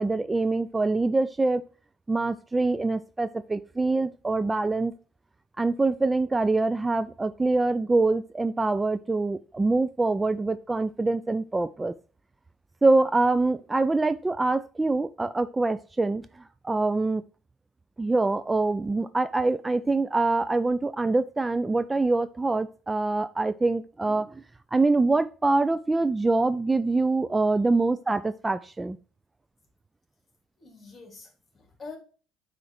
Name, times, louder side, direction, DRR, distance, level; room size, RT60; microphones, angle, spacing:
voice 1, 0.0-1.6 2.1-4.9 5.6-11.9 12.8-17.2 18.0-24.4 24.7-29.0, right 3 dB, 20° right, 0.4 m, -25 dB
voice 2, 30.6-32.0, left 4 dB, 30° left, 2.9 m, -45 dB
8.5 x 3.2 x 4.8 m
hypercardioid pair, 65°, 0 cm